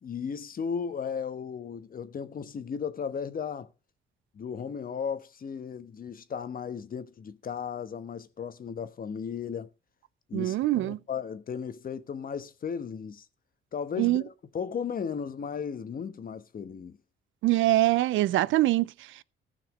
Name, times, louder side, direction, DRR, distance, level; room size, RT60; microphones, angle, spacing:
voice 1, 0.0-3.7 4.3-9.7 10.3-13.3 13.7-17.0, left 6 dB, 45° left, 1.2 m, -35 dB
voice 2, 10.3-11.0 14.0-14.2 17.4-19.2, right 16 dB, 75° right, 0.5 m, -24 dB
15.0 x 5.9 x 5.3 m
cardioid pair, 90°, 20 cm